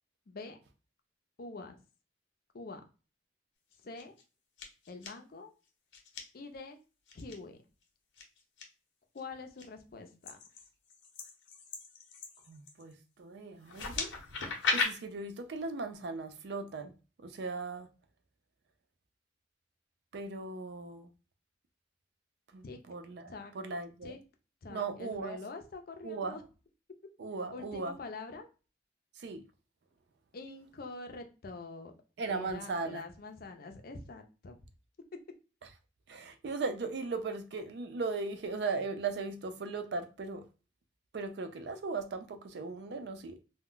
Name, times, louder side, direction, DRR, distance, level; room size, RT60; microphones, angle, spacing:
voice 1, 0.3-0.6 1.4-1.8 2.5-2.8 3.8-4.2 4.9-5.5 6.3-6.8 7.1-7.6 9.1-10.4 22.6-22.8 23.3-23.5 24.0-24.2 24.6-26.4 27.5-28.5 30.3-31.9 32.3-34.6, left 3 dB, 50° left, 0.5 m, -45 dB
sound 1, 3.7-4.2 4.6-5.1 5.9-6.2 7.1-7.3 8.2-8.6 9.2-9.6 10.2-12.9 13.6-14.9, left 4 dB, 90° left, 0.8 m, -36 dB
voice 2, 12.5-14.1 14.7-16.9 17.2-17.9 20.1-21.1 22.5-24.1 24.7-25.4 26.0-26.4 27.2-28.0 29.2-29.4 32.2-33.0 36.1-40.4 41.1-43.4, right 4 dB, 60° right, 0.4 m, -38 dB
2.2 x 2.0 x 3.7 m
head